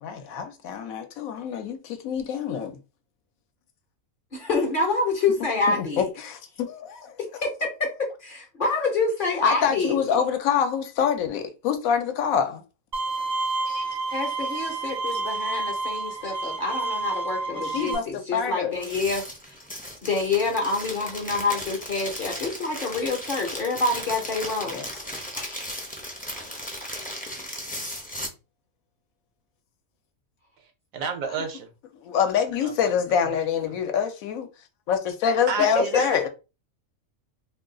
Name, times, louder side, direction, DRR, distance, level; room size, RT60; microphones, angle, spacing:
voice 1, 0.0-2.8 5.7-7.1 9.4-12.6 13.7-13.9 17.5-18.7 24.7-24.8 25.4-25.6 32.0-34.5 34.9-36.3, left 7 dB, 75° left, 1.0 m, -26 dB
voice 2, 4.3-6.0 7.4-10.2 14.1-19.6 20.0-25.1 35.9-36.0, left 3 dB, 50° left, 0.7 m, -27 dB
Bowed string instrument, 12.9-17.9, right 3 dB, 40° right, 0.6 m, -29 dB
sound 1, 18.7-28.3, equal, 10° left, 0.4 m, -36 dB
voice 3, 30.9-31.7 32.6-32.7 33.2-33.4 33.7-33.8 35.5-36.3, right 5 dB, 70° right, 1.0 m, -31 dB
2.6 x 2.3 x 3.7 m
omnidirectional pair, 1.5 m